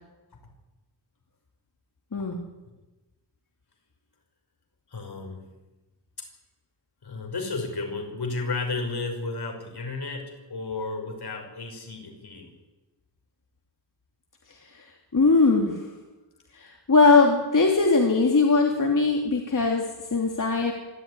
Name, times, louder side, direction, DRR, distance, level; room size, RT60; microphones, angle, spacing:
voice 1, 4.9-5.5 7.0-12.5, left 3 dB, 70° left, 3 dB, 6.0 m, -33 dB
voice 2, 14.5-15.9 16.5-20.7, left 3 dB, 50° left, 1 dB, 2.9 m, -21 dB
25.5 x 13.5 x 9.9 m, 1.1 s
wide cardioid pair, 95°, 41 cm